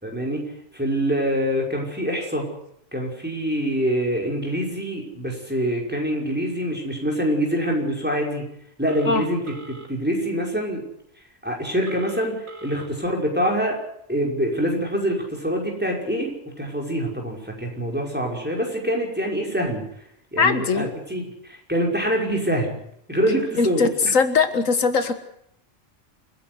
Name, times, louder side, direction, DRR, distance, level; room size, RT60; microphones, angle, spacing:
voice 1, 0.0-0.5 0.7-2.5 2.9-8.4 8.8-10.8 11.4-13.8 14.1-16.3 16.6-19.8 20.3-22.7 23.1-24.1, equal, 5° right, 0 dB, 5.6 m, -25 dB
Telephone, 8.9-9.9 11.9-12.9, right 1 dB, 90° right, 3.1 m, -41 dB
voice 2, 20.4-20.9 23.6-25.1, left 5 dB, 85° left, 9 dB, 2.0 m, -20 dB
28.5 x 11.0 x 9.6 m, 0.75 s
omnidirectional pair, 1.3 m